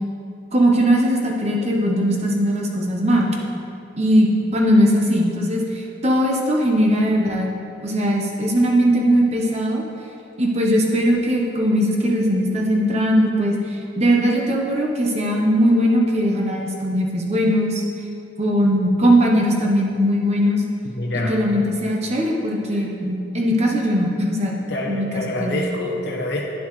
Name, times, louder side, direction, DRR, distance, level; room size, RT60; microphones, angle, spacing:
voice 1, 0.5-3.4 3.9-7.5 7.8-9.8 10.4-17.8 18.4-20.6 21.3-24.6 24.9-25.6, equal, 35° right, -1 dB, 0.9 m, -19 dB
voice 2, 21.0-21.4 22.7-22.8 24.7-26.4, left 1 dB, 60° left, -2 dB, 0.8 m, -26 dB
9.7 x 7.1 x 3.2 m, 2.7 s
head